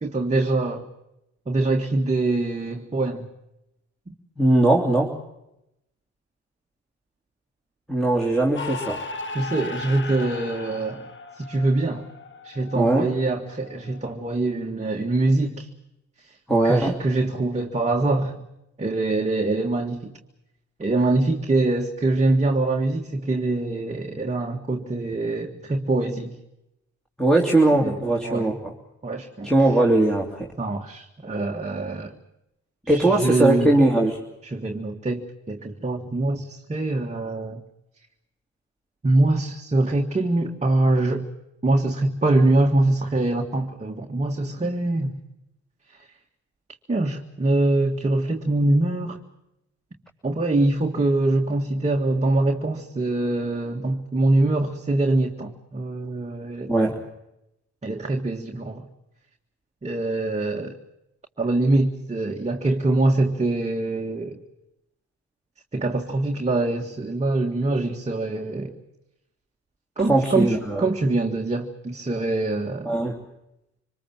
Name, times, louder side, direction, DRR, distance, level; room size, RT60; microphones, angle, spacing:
voice 1, 0.0-0.9 1.5-3.3 4.1-4.2 9.3-11.1 11.4-12.0 12.4-15.7 16.6-18.4 18.8-20.1 20.8-26.4 27.8-28.0 28.2-28.5 29.0-29.5 30.6-32.1 32.9-33.8 34.4-37.6 39.0-41.3 41.6-45.1 46.9-49.2 50.2-56.7 57.8-58.8 59.8-60.8 61.4-64.4 65.7-68.8 70.0-73.0, right 2 dB, 20° right, 1 dB, 1.9 m, -24 dB
voice 2, 4.4-5.2 7.9-9.0 12.7-13.1 16.5-17.0 27.2-28.7 29.4-30.5 32.9-34.2 56.7-57.0 70.0-70.8 72.8-73.2, right 2 dB, ahead, -1 dB, 3.1 m, -20 dB
sound 1, 8.6-14.1, left 3 dB, 40° left, 1.8 m, -37 dB
25.0 x 20.5 x 7.5 m, 0.85 s
cardioid pair, 90°, 30 cm